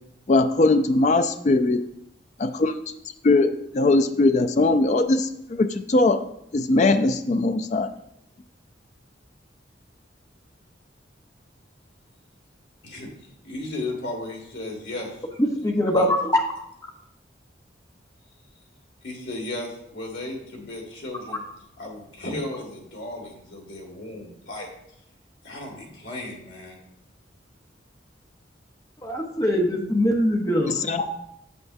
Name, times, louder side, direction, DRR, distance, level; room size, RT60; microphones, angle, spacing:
voice 1, 0.3-1.8 2.4-2.7 3.2-6.2 6.5-7.9 30.7-31.0, left 2 dB, 40° left, 9 dB, 0.4 m, -20 dB
voice 2, 13.4-15.2 15.9-16.0 19.0-21.4 21.8-24.7 25.4-26.8, left 2 dB, 80° left, -1 dB, 2.0 m, -35 dB
voice 3, 15.4-16.2 21.3-21.4 29.0-31.0, equal, 20° left, 1 dB, 0.9 m, -23 dB
7.8 x 7.0 x 2.6 m, 0.77 s
head